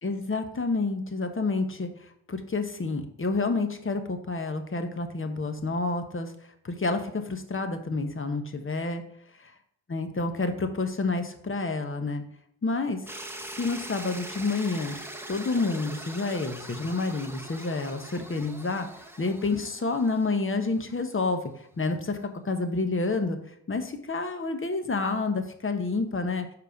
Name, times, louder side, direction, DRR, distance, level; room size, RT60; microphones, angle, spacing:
voice 1, 0.0-1.9 2.3-6.3 6.6-9.0 9.9-12.2 12.6-13.0 13.6-15.0 15.3-22.2 22.4-23.4 23.7-26.5, left 3 dB, 25° left, 7 dB, 1.1 m, -29 dB
sound 1, 13.1-21.1, right 1 dB, 5° right, 1.0 m, -42 dB
5.1 x 4.6 x 5.1 m, 0.69 s
hypercardioid pair, 40°, 50 cm